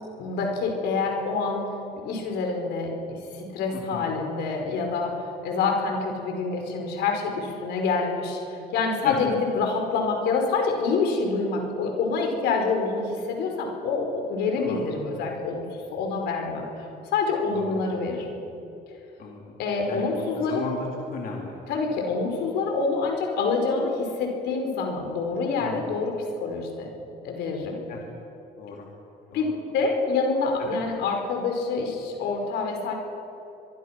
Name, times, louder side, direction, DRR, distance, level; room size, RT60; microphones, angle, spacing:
voice 1, 0.2-1.6 2.0-18.4 19.6-20.6 21.7-26.9 27.2-27.8 29.3-32.9, left 4 dB, 80° left, 2 dB, 5.2 m, -27 dB
voice 2, 3.7-4.1 9.0-9.2 14.6-14.9 17.5-17.9 19.2-19.4 19.9-20.1 20.4-21.6 25.6-25.9 27.9-28.0 28.6-28.9 29.3-29.4 30.7-30.8, left 5 dB, 60° left, -1 dB, 3.6 m, -36 dB
24.5 x 23.0 x 6.1 m, 2.8 s
cardioid pair, 110°, 17 cm